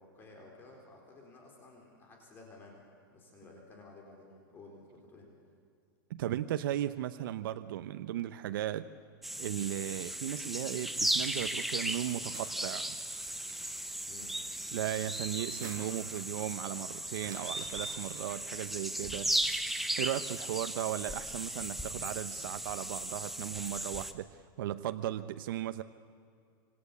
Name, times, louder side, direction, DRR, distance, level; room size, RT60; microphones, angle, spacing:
voice 1, 0.0-2.8 3.1-5.3 14.0-14.4, left 2 dB, 20° left, 0 dB, 4.2 m, -54 dB
voice 2, 6.1-8.9 9.4-13.0 14.7-19.5 20.0-24.3 24.6-25.8, right 12 dB, 70° right, 10 dB, 0.8 m, -36 dB
sound 1, 9.2-24.1, right 1 dB, ahead, 1.0 m, -36 dB
sound 2, 11.5-12.5 13.3-13.8 15.3-16.0 17.1-18.5, right 6 dB, 35° right, 5.8 m, -51 dB
26.5 x 25.5 x 8.4 m, 2.4 s
supercardioid pair, 160°, 12 cm